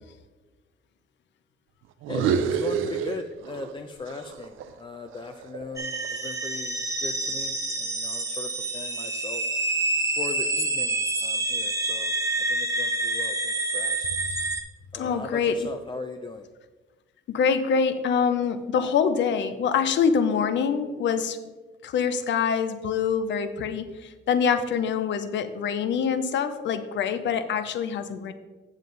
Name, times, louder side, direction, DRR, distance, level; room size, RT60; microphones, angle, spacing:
sound 1, 2.0-3.8 4.1-6.3, right 7 dB, 90° right, 0.5 m, -29 dB
voice 1, 2.1-9.4 10.1-14.1 14.9-16.5, left 4 dB, 25° left, 6 dB, 0.5 m, -38 dB
sound 2, 5.8-14.6, right 2 dB, 15° right, 1.1 m, -28 dB
voice 2, 14.9-15.7 17.3-21.4 21.8-28.3, left 6 dB, 65° left, 11 dB, 0.7 m, -25 dB
7.5 x 7.3 x 4.0 m, 1.3 s
cardioid pair, 90°, 20 cm